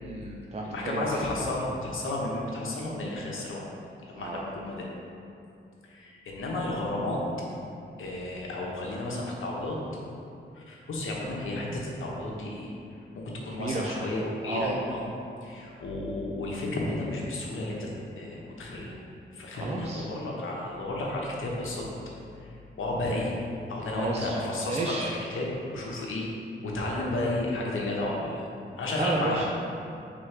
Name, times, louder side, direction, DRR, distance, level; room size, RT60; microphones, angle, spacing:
voice 1, 0.0-1.2 4.2-4.4 13.5-14.1 14.4-14.9 19.5-20.0 23.9-24.4 24.7-25.1 29.0-29.5, right 2 dB, 30° right, -1 dB, 0.4 m, -32 dB
voice 2, 0.6-3.6 4.0-4.9 5.8-7.2 8.0-9.8 10.5-12.7 13.1-15.1 15.4-17.9 18.2-19.0 19.3-21.9 22.4-22.5 22.8-23.4 23.7-26.3 26.6-28.5 28.8-29.5, left 1 dB, 75° left, -3 dB, 0.9 m, -32 dB
3.4 x 3.2 x 4.9 m, 2.6 s
cardioid pair, 60°, 21 cm